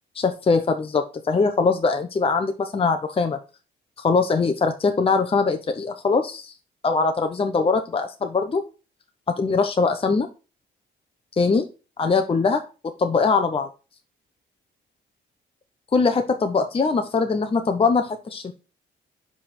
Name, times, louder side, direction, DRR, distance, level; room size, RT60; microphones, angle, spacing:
voice 1, 0.2-3.4 4.0-6.5 6.8-8.6 9.4-10.3 11.4-11.7 12.0-13.7 15.9-18.5, left 4 dB, 30° left, 6 dB, 0.8 m, -22 dB
5.6 x 5.1 x 4.3 m, 0.32 s
cardioid pair, 90°, 20 cm